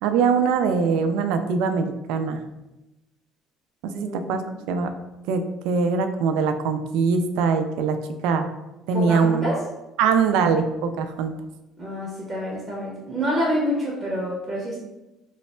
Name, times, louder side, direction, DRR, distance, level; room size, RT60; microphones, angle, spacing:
voice 1, 0.0-2.4 3.8-4.4 4.7-4.9 5.3-8.0 8.2-8.5 8.9-9.5 10.0-11.3, right 5 dB, 85° right, 8 dB, 0.3 m, -22 dB
voice 2, 3.9-4.6 8.9-9.6 11.8-14.8, equal, 20° right, -4 dB, 0.7 m, -27 dB
3.1 x 2.1 x 4.2 m, 0.98 s
cardioid pair, 140°, 0 cm